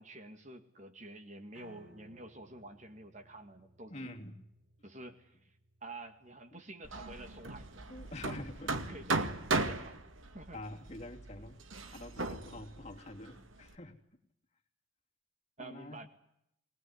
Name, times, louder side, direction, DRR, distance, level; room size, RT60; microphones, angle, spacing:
voice 1, 0.0-4.2 4.8-5.5 5.8-7.8 8.9-9.3 9.6-10.0 10.3-10.6 15.6-16.1, right 2 dB, 35° right, 7 dB, 2.0 m, -49 dB
Piano, 1.5-7.7, equal, 60° right, 7.7 m, -63 dB
voice 2, 3.9-4.4 6.5-6.6 7.9-9.0 10.5-11.6 11.9-14.0 15.6-16.0, left 1 dB, 35° left, 2 dB, 2.9 m, -46 dB
Hammer, 6.8-13.7, right 3 dB, 85° right, 2.1 m, -37 dB
21.0 x 20.0 x 9.8 m, 0.77 s
head